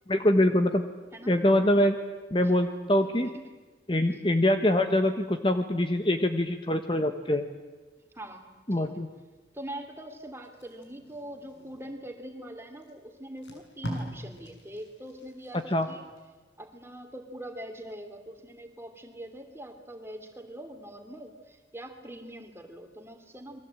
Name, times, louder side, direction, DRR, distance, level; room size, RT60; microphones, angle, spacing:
voice 1, 0.1-0.8 1.3-2.0 2.3-3.3 3.9-7.4 8.7-9.1 15.7-15.9, left 1 dB, 25° left, 7 dB, 1.2 m, -24 dB
voice 2, 8.1-9.0 9.5-16.1 16.6-23.6, right 1 dB, 15° right, 5 dB, 3.0 m, -43 dB
Packing tape duct tape, 10.4-12.1 12.8-12.9 13.2-16.2 16.6-16.9, equal, 85° left, 7.7 m, -42 dB
29.0 x 23.0 x 8.9 m, 1.2 s
head